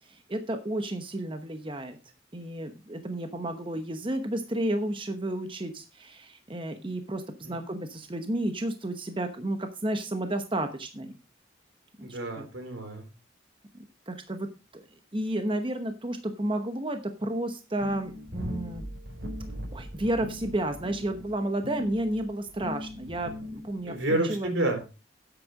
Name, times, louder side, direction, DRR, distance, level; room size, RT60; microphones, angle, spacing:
voice 1, 0.0-2.0 2.3-11.2 12.0-12.5 13.7-14.5 14.7-14.8 15.1-18.8 19.7-24.0 24.3-24.5, right 1 dB, 25° right, 7 dB, 0.9 m, -32 dB
voice 2, 12.0-13.1 23.8-24.8, right 1 dB, 80° right, 4 dB, 3.8 m, -29 dB
sound 1, 17.8-24.0, left 1 dB, 60° right, 5.8 m, -39 dB
10.0 x 8.0 x 4.8 m, 0.31 s
head